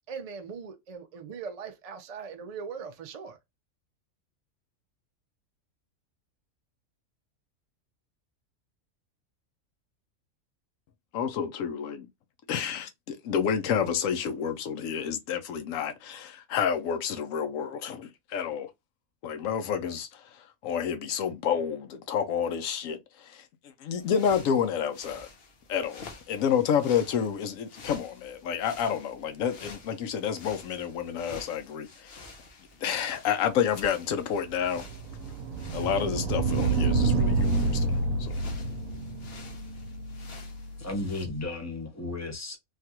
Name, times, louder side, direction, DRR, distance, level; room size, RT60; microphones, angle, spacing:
voice 1, 0.1-3.4, right 6 dB, 70° right, 0.3 m, -40 dB
voice 2, 11.1-12.1 12.5-18.7 19.2-23.4 23.8-25.3 25.7-32.2 32.8-34.9 35.7-38.4, left 8 dB, 75° left, 1.0 m, -29 dB
sound 1, 23.9-41.3, left 3 dB, 50° left, 0.9 m, -49 dB
sound 2, 34.2-41.0, right 3 dB, 85° right, 1.0 m, -29 dB
voice 3, 40.8-42.6, left 2 dB, 20° left, 0.5 m, -34 dB
3.3 x 2.4 x 2.8 m
omnidirectional pair, 1.4 m